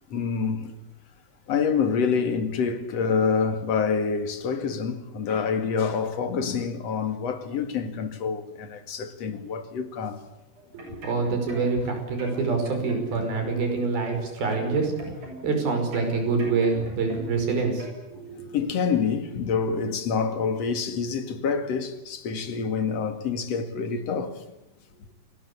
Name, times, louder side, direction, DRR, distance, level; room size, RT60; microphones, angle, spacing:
voice 1, 0.1-0.7 1.5-10.2 18.5-24.4, left 5 dB, 50° left, 2.8 m, -27 dB
sound 1, 10.6-11.9 12.2-13.7 14.1-15.6 15.9-17.5 17.8-18.0, right 1 dB, 60° right, 9.0 m, -41 dB
voice 2, 10.7-14.9 15.4-18.4, right 4 dB, 85° right, 7.4 m, -26 dB
29.0 x 20.5 x 8.5 m
omnidirectional pair, 4.2 m